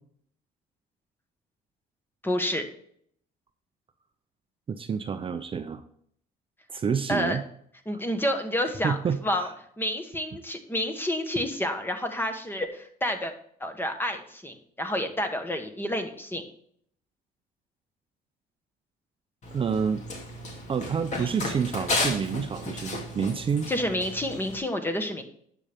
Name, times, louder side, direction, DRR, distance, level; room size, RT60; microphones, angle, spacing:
voice 1, 2.2-2.6 7.1-7.4 7.8-9.0 9.2-13.3 13.6-16.4 23.7-25.2, left 1 dB, 10° left, 6 dB, 1.3 m, -29 dB
voice 2, 4.7-5.8 6.7-7.4 8.8-9.5 19.5-20.0 20.7-23.7, right 6 dB, 30° right, 8 dB, 0.6 m, -28 dB
Run, 19.4-24.6, left 2 dB, 45° left, 2.4 m, -33 dB
9.8 x 6.8 x 3.6 m, 0.65 s
cardioid pair, 110°, 17 cm